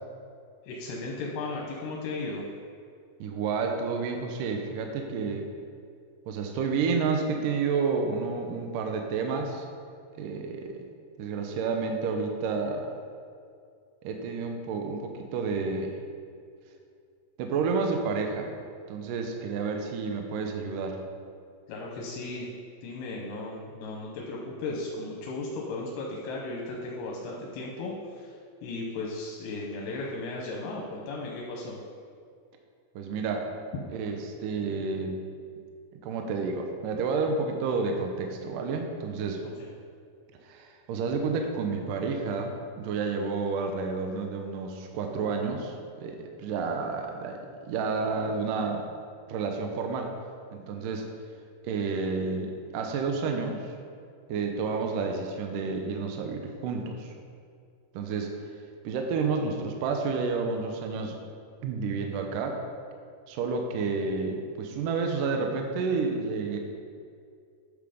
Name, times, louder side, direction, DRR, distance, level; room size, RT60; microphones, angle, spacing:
voice 1, 0.7-2.4 21.7-22.5 22.8-28.3 28.6-31.8 39.4-39.5, left 2 dB, 85° left, -1 dB, 3.0 m, -36 dB
voice 2, 3.2-5.5 6.3-9.7 10.2-10.8 11.2-12.9 14.0-16.0 17.4-18.5 18.9-21.0 33.0-33.5 33.9-35.2 36.0-39.4 40.4-48.8 49.3-50.1 50.5-51.1 51.6-53.7 54.3-57.2 57.9-58.3 58.8-61.2 61.6-62.6 63.3-66.6, right 4 dB, 75° right, 3 dB, 2.1 m, -30 dB
9.8 x 7.1 x 5.0 m, 2.3 s
omnidirectional pair, 4.5 m